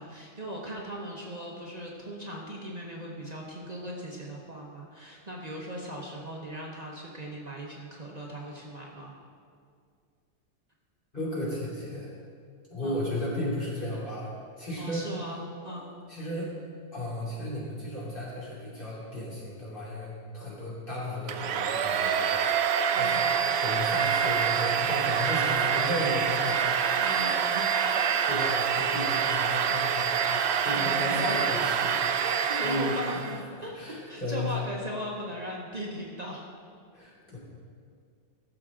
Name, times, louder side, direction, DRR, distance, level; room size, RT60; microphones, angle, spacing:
voice 1, 0.0-9.1 12.8-13.0 14.8-15.9 22.9-23.4 27.0-27.8 30.7-31.5 32.2-36.4, equal, 35° right, -2 dB, 1.0 m, -38 dB
voice 2, 11.1-12.1 12.7-15.1 16.1-16.5 16.9-22.5 22.9-23.2 23.6-26.6 27.1-27.3 28.0-32.0 32.6-33.3 33.7-34.5 36.9-37.4, left 1 dB, 45° left, -7 dB, 3.2 m, -34 dB
Domestic sounds home sounds, 21.3-33.4, right 7 dB, 65° right, 0.8 m, -26 dB
16.0 x 7.1 x 3.7 m, 2.2 s
omnidirectional pair, 1.2 m